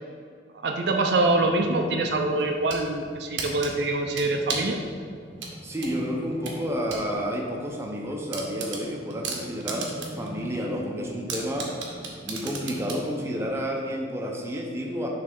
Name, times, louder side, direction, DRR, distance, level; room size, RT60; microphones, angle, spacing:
voice 1, 0.6-4.8, right 2 dB, 60° right, 3 dB, 0.5 m, -24 dB
sound 1, 1.2-13.6, equal, 40° left, 0.8 m, -42 dB
sound 2, 2.4-2.8 3.4-4.8 5.4-7.1 7.4-7.5 7.9-8.0 8.3-10.3 10.6-10.7 11.3-13.0, right 4 dB, 90° right, 1.0 m, -34 dB
voice 2, 5.6-11.7 12.2-15.1, equal, 15° right, -1 dB, 0.6 m, -30 dB
6.7 x 3.3 x 5.2 m, 2.1 s
head